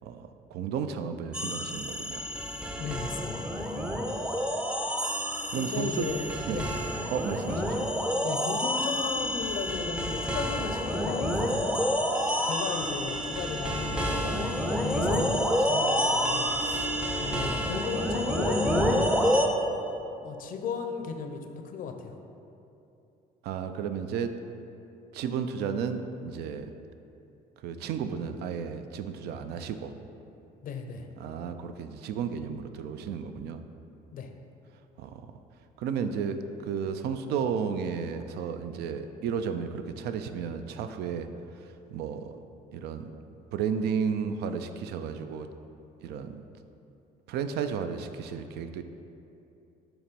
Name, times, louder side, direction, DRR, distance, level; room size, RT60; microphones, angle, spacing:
voice 1, 0.0-2.2 5.5-6.1 6.5-6.6 7.1-7.8 23.4-24.3 25.1-26.7 27.6-29.9 31.2-33.6 35.0-35.2 35.8-41.3 41.6-42.3 42.7-43.1 43.5-45.5 46.0-46.4 47.3-48.8, right 6 dB, 75° right, 9 dB, 0.4 m, -33 dB
sound 1, 1.3-19.5, equal, 5° right, 0.5 m, -28 dB
voice 2, 2.8-3.5 5.6-6.7 7.6-7.8 8.2-11.8 12.4-16.9 17.2-19.2 20.2-22.2 30.6-31.1 34.1-34.3, left 5 dB, 55° left, 6 dB, 0.6 m, -35 dB
7.0 x 3.0 x 5.1 m, 2.8 s
cardioid pair, 110°, 17 cm